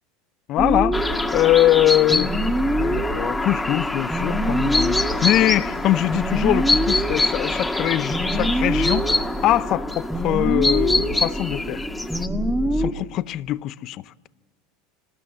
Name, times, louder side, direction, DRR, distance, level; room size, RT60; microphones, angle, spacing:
voice 1, 0.5-1.0 1.3-11.9 12.8-14.0, left 14 dB, 50° left, 0.7 m, -22 dB
sound 1, 0.6-12.9, right 1 dB, 5° right, 1.6 m, -25 dB
sound 2, 0.9-12.3, left 2 dB, 10° left, 1.8 m, -26 dB
27.0 x 19.5 x 7.2 m
hypercardioid pair, 90°, 0 cm